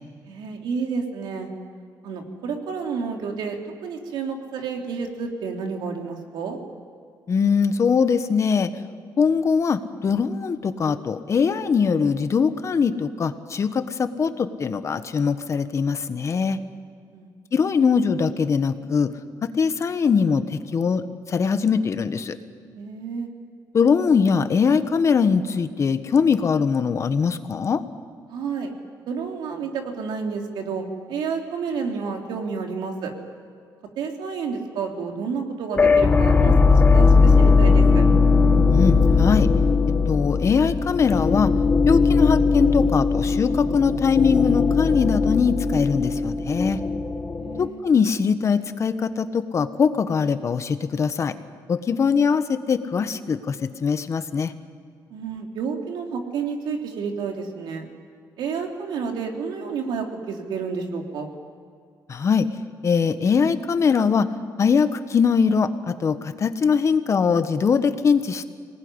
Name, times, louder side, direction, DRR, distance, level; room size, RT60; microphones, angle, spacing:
voice 1, 0.3-1.5 2.0-3.6 3.8-6.6 17.1-17.3 22.8-23.3 28.3-28.7 29.1-33.1 34.0-38.0 47.3-47.8 55.1-57.9 58.4-61.3, right 5 dB, 85° right, 2 dB, 3.4 m, -30 dB
voice 2, 7.3-8.7 9.2-16.6 17.5-19.1 19.4-21.0 21.3-22.4 23.7-27.8 38.7-39.5 40.1-41.5 41.9-46.8 47.6-51.3 51.7-54.5 62.1-62.5 62.8-64.3 64.6-68.5, left 6 dB, 40° left, 10 dB, 1.4 m, -21 dB
sound 1, 35.8-47.7, left 4 dB, 25° left, 1.2 m, -18 dB
25.5 x 19.5 x 9.9 m, 2.1 s
cardioid pair, 125°, 8 cm